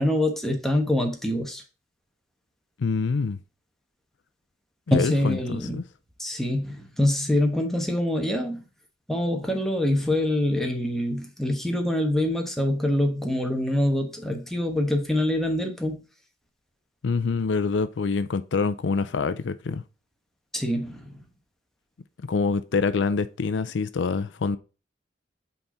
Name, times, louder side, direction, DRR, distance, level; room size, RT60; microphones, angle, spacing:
voice 1, 0.0-1.6 4.9-5.8 6.2-8.6 9.1-16.0 20.5-21.0, left 1 dB, ahead, 1.2 m, -25 dB
voice 2, 2.8-3.4 4.9-5.8 17.0-19.8 22.3-24.6, left 4 dB, 75° left, 0.5 m, -26 dB
5.6 x 4.2 x 4.3 m
head